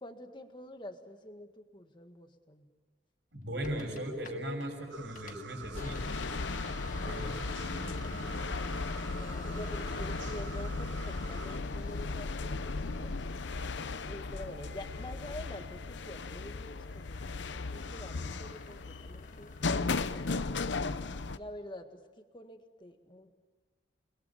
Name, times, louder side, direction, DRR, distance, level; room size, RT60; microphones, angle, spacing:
voice 1, 0.0-2.7 9.2-13.2 14.0-20.7 21.4-23.3, left 1 dB, 25° left, 6 dB, 1.8 m, -47 dB
voice 2, 3.3-6.4 6.9-8.4, equal, 70° right, 3 dB, 6.6 m, -39 dB
sound 1, 3.6-4.7 5.0-15.4 15.7-20.5, left 3 dB, 45° left, 1.5 m, -51 dB
sound 2, 4.9-11.6, right 6 dB, 85° right, 1.2 m, -48 dB
sound 3, 5.7-21.4, left 3 dB, 75° left, 0.8 m, -36 dB
30.0 x 21.5 x 7.5 m, 1.3 s
head